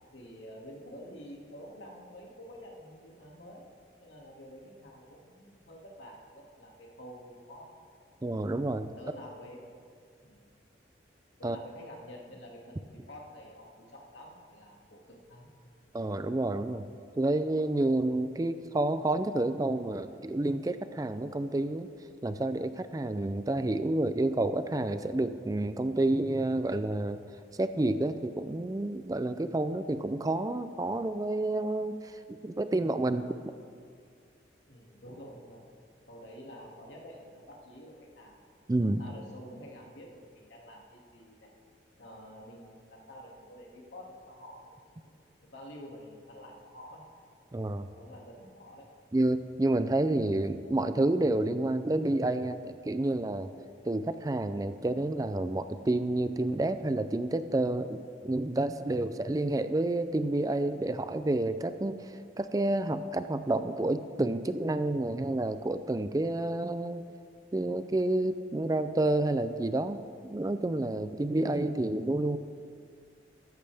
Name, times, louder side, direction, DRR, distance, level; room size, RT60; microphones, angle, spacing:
voice 1, 0.0-3.6 4.0-7.9 8.8-9.6 10.2-10.5 11.4-15.5 34.7-35.6 36.1-38.4 38.8-41.5 42.0-45.1 45.4-47.0 47.9-48.9, equal, 85° left, -2 dB, 2.3 m, -49 dB
voice 2, 8.2-8.9 11.4-11.6 15.9-16.8 17.2-21.9 22.2-27.2 27.6-33.3 38.7-39.0 47.5-47.9 49.1-53.5 53.8-67.0 67.5-72.4, right 2 dB, 20° right, 11 dB, 0.4 m, -29 dB
14.0 x 14.0 x 3.5 m, 2.2 s
head